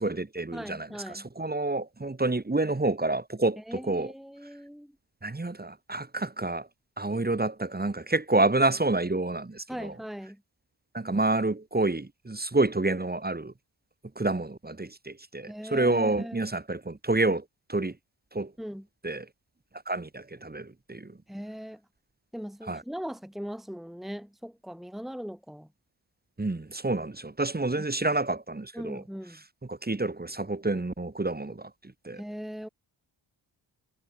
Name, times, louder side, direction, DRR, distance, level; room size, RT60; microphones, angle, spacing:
voice 1, 0.0-4.1 5.2-6.7 7.0-9.9 10.9-13.5 14.2-18.0 18.3-18.5 19.0-19.3 19.9-21.2 22.6-22.8 26.4-29.0 29.6-32.2, right 2 dB, 20° right, 2.9 m, -28 dB
voice 2, 0.5-1.3 3.6-4.9 9.7-10.4 15.5-16.4 18.6-18.9 21.3-21.8 22.3-25.7 28.7-29.4 32.2-32.7, equal, ahead, 2.5 m, -39 dB
cardioid pair, 65°, 47 cm